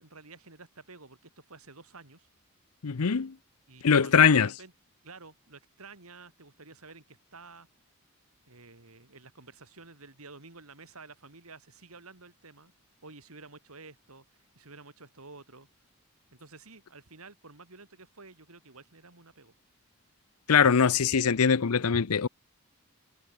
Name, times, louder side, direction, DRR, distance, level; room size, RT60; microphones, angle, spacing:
voice 1, 0.0-2.3 3.7-4.7 5.0-7.7 8.5-12.7 13.0-15.7 16.3-19.5, right 3 dB, 80° right, 3.4 m, -50 dB
voice 2, 2.8-3.3 3.8-4.5 20.5-22.3, left 6 dB, 85° left, 0.7 m, -22 dB
head